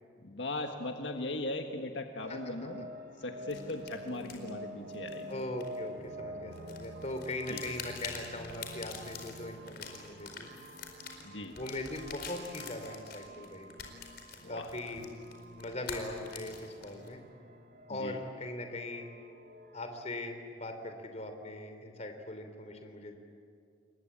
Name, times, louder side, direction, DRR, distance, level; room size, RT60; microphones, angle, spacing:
voice 1, 0.2-2.9 3.2-5.3 7.5-7.6 11.2-11.6 14.4-14.7 17.9-18.2, left 2 dB, 75° left, 4 dB, 1.6 m, -38 dB
sound 1, 2.2-20.1, right 1 dB, 55° right, 2.8 m, -48 dB
sound 2, 3.5-6.2 6.5-17.1, left 6 dB, 55° left, 4.5 m, -47 dB
voice 2, 5.3-10.5 11.6-13.7 14.5-15.1 15.6-17.2 17.9-19.1 19.7-23.2, left 2 dB, 35° left, 6 dB, 3.2 m, -40 dB
28.5 x 22.5 x 8.7 m, 2.3 s
head